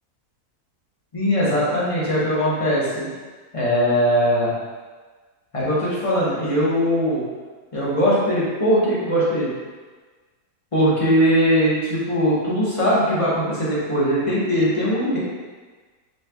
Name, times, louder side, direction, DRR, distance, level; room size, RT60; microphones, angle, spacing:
voice 1, 1.1-3.1 3.5-4.6 5.5-7.2 7.7-9.5 10.7-15.2, equal, 25° left, -8 dB, 0.9 m, -20 dB
5.2 x 3.2 x 2.3 m, 1.4 s
omnidirectional pair, 1.6 m